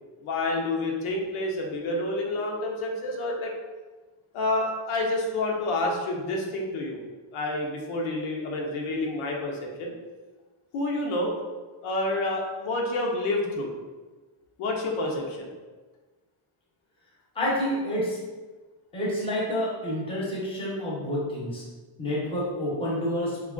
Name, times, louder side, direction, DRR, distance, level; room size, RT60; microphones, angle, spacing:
voice 1, 0.2-3.5 4.3-7.0 7.3-9.9 10.7-11.3 11.8-13.7 14.6-15.5, left 2 dB, 85° left, 0 dB, 0.7 m, -28 dB
voice 2, 17.3-18.2 18.9-21.6 22.0-23.5, equal, 10° left, -6 dB, 0.8 m, -28 dB
3.0 x 2.3 x 3.6 m, 1.3 s
cardioid pair, 165°, 49 cm